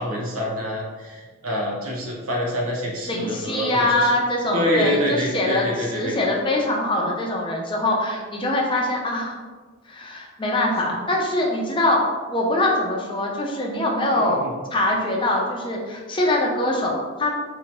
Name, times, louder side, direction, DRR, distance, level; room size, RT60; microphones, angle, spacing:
voice 1, 0.0-4.1 4.5-6.2 10.9-11.0 14.1-14.5, equal, 85° right, -2 dB, 0.9 m, -26 dB
voice 2, 3.0-9.4 9.9-12.0 12.3-14.4 14.7-17.3, left 1 dB, 25° left, -1 dB, 0.5 m, -23 dB
3.9 x 2.7 x 2.9 m, 1.4 s
head